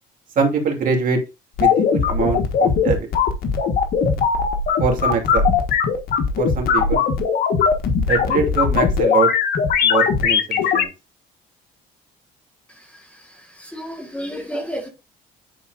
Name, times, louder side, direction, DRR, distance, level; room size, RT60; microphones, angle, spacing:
voice 1, 0.4-1.2 1.6-3.0 4.8-5.5 6.4-7.0 8.1-9.3 9.8-10.9, right 5 dB, 55° right, 2.6 m, -23 dB
sound 1, 1.6-10.8, left 6 dB, 65° left, 1.4 m, -19 dB
voice 2, 12.9-14.9, equal, 5° left, 1.5 m, -32 dB
10.0 x 4.4 x 2.5 m
cardioid pair, 110°, 17 cm